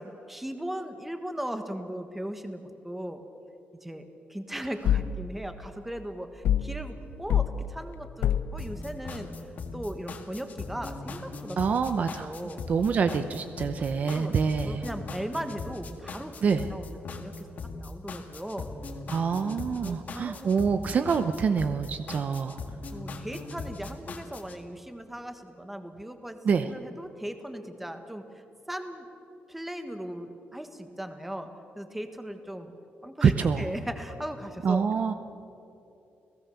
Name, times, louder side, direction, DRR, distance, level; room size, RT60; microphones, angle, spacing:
voice 1, 0.0-3.2 3.8-9.3 9.7-11.6 11.9-12.6 14.0-14.4 14.6-17.5 17.8-18.7 19.8-20.5 22.9-26.4 26.7-28.2 28.7-29.1 29.5-31.5 31.7-32.7 33.0-34.8, right 1 dB, 5° right, 7 dB, 1.4 m, -38 dB
sound 1, 4.8-5.2 6.4-6.8 7.3-7.6 8.2-8.6, left 10 dB, 90° left, 0.8 m, -24 dB
sound 2, 8.6-24.6, left 3 dB, 45° left, 1.9 m, -39 dB
voice 2, 11.6-12.3 12.7-14.8 16.4-16.7 19.1-22.6 26.4-26.7 33.2-33.7 34.6-35.1, right 6 dB, 40° right, 9 dB, 0.8 m, -26 dB
30.0 x 18.0 x 7.0 m, 2.8 s
wide cardioid pair, 180°, 4 cm